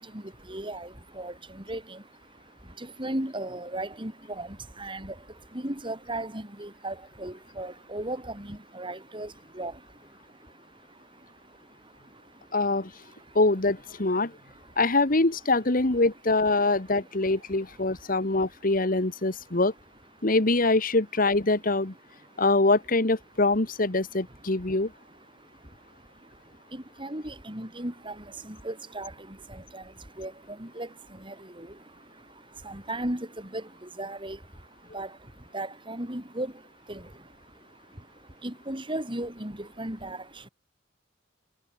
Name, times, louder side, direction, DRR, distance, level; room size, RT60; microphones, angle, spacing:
voice 1, 0.0-13.4 14.1-14.8 16.9-17.0 17.5-18.4 19.5-19.6 22.2-22.4 24.3-40.5, right 1 dB, 30° right, 5.7 m, -38 dB
voice 2, 12.5-12.9 13.3-14.3 14.8-19.7 20.2-21.9 22.4-24.9, left 2 dB, 50° left, 1.6 m, -24 dB
head